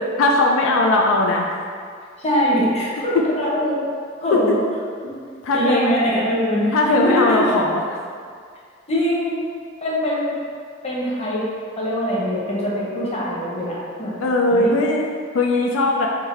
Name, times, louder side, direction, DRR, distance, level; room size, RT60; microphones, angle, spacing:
voice 1, 0.2-1.6 3.1-3.2 4.3-4.4 5.4-5.9 6.7-7.8 14.2-16.1, left 2 dB, 85° left, 0 dB, 0.4 m, -19 dB
voice 2, 2.2-3.8 4.2-4.6 5.0-5.1 5.5-7.5 8.9-9.4 9.8-10.4 10.8-11.5 11.8-14.1 14.5-14.7, equal, 35° left, -6 dB, 0.9 m, -22 dB
3.7 x 2.6 x 4.3 m, 2.1 s
head